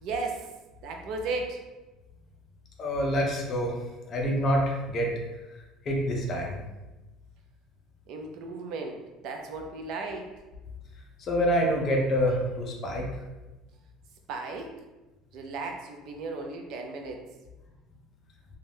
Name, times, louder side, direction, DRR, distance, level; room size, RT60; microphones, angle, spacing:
voice 1, 0.0-0.5 0.8-1.6 8.1-10.3 14.3-14.8 15.3-17.3, right 3 dB, 55° right, 3 dB, 0.4 m, -35 dB
voice 2, 2.8-3.8 4.1-5.1 5.9-6.6 11.2-13.0, equal, 30° left, 0 dB, 0.5 m, -26 dB
2.6 x 2.2 x 3.3 m, 1.1 s
cardioid pair, 165°, 0 cm